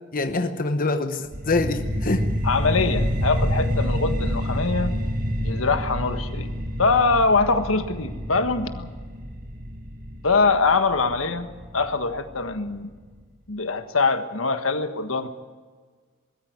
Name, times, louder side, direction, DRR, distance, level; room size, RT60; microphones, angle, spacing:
voice 1, 0.1-2.3, left 3 dB, 45° left, 7 dB, 1.0 m, -25 dB
sound 1, 1.3-12.3, equal, 45° right, 1.6 m, -28 dB
voice 2, 2.4-4.9 5.4-6.5 6.8-8.9 10.2-11.5 11.7-12.9 13.5-15.3, left 4 dB, 85° left, 8 dB, 1.5 m, -23 dB
21.0 x 14.0 x 9.6 m, 1.5 s
head